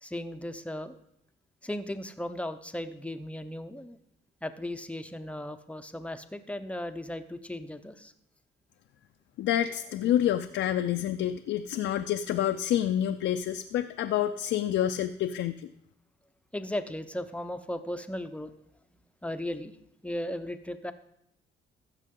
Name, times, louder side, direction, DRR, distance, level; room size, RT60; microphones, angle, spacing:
voice 1, 0.0-0.9 1.6-4.0 4.4-8.1 16.5-18.5 18.9-19.8 20.0-20.9, left 1 dB, 5° left, 9 dB, 0.7 m, -36 dB
voice 2, 9.4-15.7, left 11 dB, 75° left, 7 dB, 0.5 m, -28 dB
15.0 x 6.5 x 3.7 m, 0.79 s
cardioid pair, 90°, 20 cm